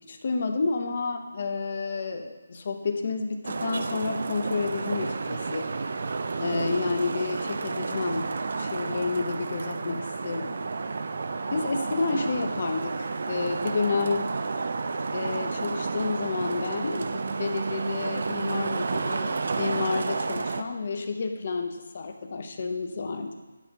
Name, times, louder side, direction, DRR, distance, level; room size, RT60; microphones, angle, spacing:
voice 1, 0.1-5.7 6.4-10.6 11.5-14.3 15.1-23.4, left 4 dB, 35° left, 5 dB, 0.6 m, -30 dB
Traffic noise roadway noise, 3.4-20.6, right 4 dB, 45° right, 0.4 m, -31 dB
10.0 x 3.6 x 5.8 m, 1.2 s
figure-of-eight pair, 175°, 0 cm